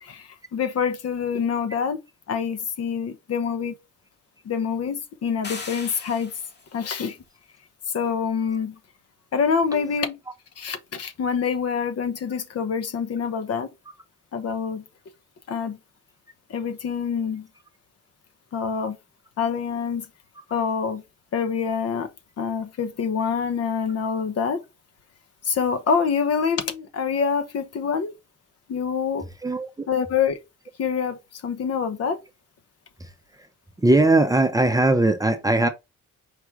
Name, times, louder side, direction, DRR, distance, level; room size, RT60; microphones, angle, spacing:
voice 1, 0.0-2.0 2.3-3.7 4.4-6.3 6.7-7.2 7.9-8.8 9.3-10.2 10.6-13.7 14.3-14.8 15.5-15.8 16.5-17.5 18.5-19.0 19.4-20.0 20.5-21.0 21.3-22.1 22.4-24.6 25.4-28.1 28.7-29.2 29.9-30.4 30.8-32.2, left 6 dB, 55° left, 0.9 m, -26 dB
sound 1, 5.4-6.7, left 4 dB, 35° left, 1.3 m, -38 dB
voice 2, 29.4-29.9 33.8-35.7, right 2 dB, 10° right, 0.6 m, -19 dB
4.9 x 2.3 x 4.5 m
cardioid pair, 90°, 30 cm